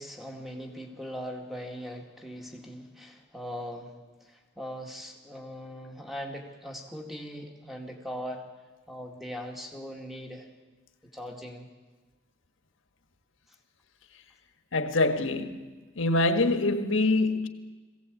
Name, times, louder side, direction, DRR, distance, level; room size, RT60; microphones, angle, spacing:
voice 1, 0.0-8.5 8.9-10.5 11.0-11.7, equal, ahead, 2.1 m, -40 dB
voice 2, 14.7-15.7 16.0-17.5, left 2 dB, 85° left, 1.4 m, -25 dB
21.5 x 16.5 x 8.3 m
head